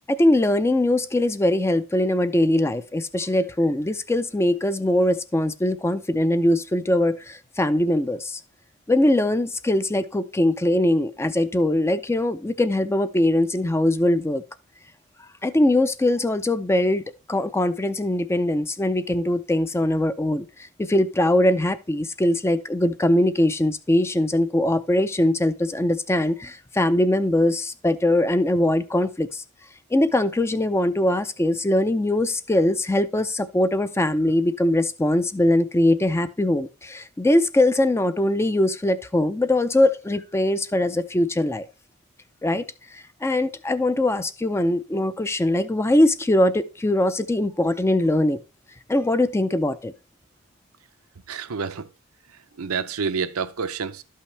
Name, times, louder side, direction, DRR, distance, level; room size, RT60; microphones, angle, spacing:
voice 1, 0.1-8.4 8.9-14.4 15.4-17.0 17.3-29.4 29.9-41.7 42.4-42.6 42.9-48.4 48.9-49.9, left 1 dB, 10° left, 0.4 m, -21 dB
voice 2, 51.3-51.9 52.6-54.0, right 5 dB, 85° right, 0.7 m, -28 dB
12.0 x 5.6 x 3.2 m
head